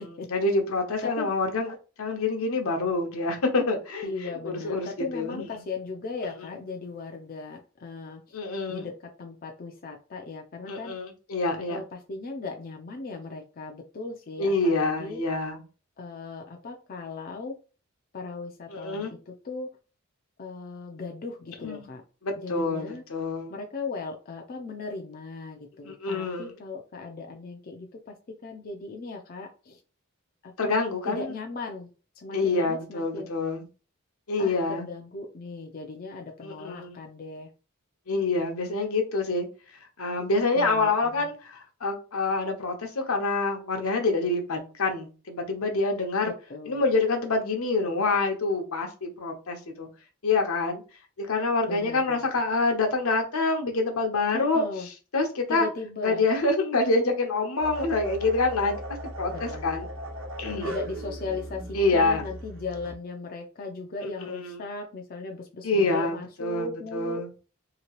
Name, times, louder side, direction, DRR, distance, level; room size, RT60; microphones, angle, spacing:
voice 1, 0.3-4.9 5.1-5.5 6.4-6.5 8.3-8.9 10.7-11.8 14.4-15.6 18.7-19.1 21.6-21.9 22.2-23.5 25.8-26.6 30.6-31.4 32.3-33.6 34.3-34.9 36.4-37.0 38.1-39.5 40.0-46.3 46.7-49.9 50.2-50.8 51.2-55.7 56.0-58.8 59.2-59.9 60.4-60.7 61.7-62.2 64.0-64.6 65.6-67.3, left 3 dB, 80° left, 0.8 m, -26 dB
voice 2, 4.0-8.4 8.7-8.9 9.2-10.9 11.7-15.2 16.0-17.5 18.1-19.7 20.4-22.0 22.4-23.0 23.5-28.1 28.4-29.8 30.4-30.7 31.0-31.9 32.2-33.3 34.4-37.5 40.6-40.9 46.5-46.9 51.7-52.4 54.3-54.9 55.5-56.2 59.3-59.8 60.6-67.2, left 3 dB, 40° left, 0.4 m, -37 dB
sound 1, 57.6-63.0, right 1 dB, 70° right, 1.0 m, -38 dB
2.9 x 2.8 x 2.9 m
head